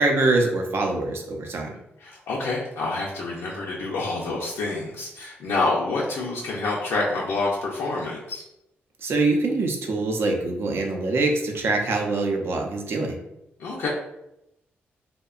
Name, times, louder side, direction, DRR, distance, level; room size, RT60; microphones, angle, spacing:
voice 1, 0.0-1.7 9.0-13.2, right 2 dB, 65° right, 2 dB, 0.5 m, -24 dB
voice 2, 2.0-8.4 13.6-13.9, left 3 dB, 85° left, -4 dB, 0.4 m, -27 dB
2.7 x 2.1 x 2.4 m, 0.87 s
cardioid pair, 85°, 4 cm